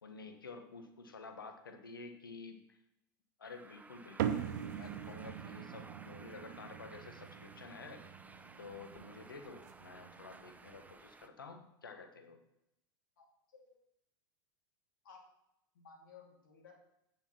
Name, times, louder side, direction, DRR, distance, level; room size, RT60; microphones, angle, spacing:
voice 1, 0.0-2.8 3.4-8.0 8.6-12.4, left 4 dB, 90° left, 5 dB, 1.3 m, -51 dB
sound 1, 3.4-11.3, right 3 dB, 15° right, 0.7 m, -56 dB
sound 2, 4.2-10.9, right 9 dB, 65° right, 0.8 m, -42 dB
voice 2, 13.2-13.8 15.0-15.2 15.7-16.7, left 5 dB, 75° left, -1 dB, 2.8 m, -58 dB
9.1 x 6.0 x 5.8 m, 0.84 s
hypercardioid pair, 90°, 11 cm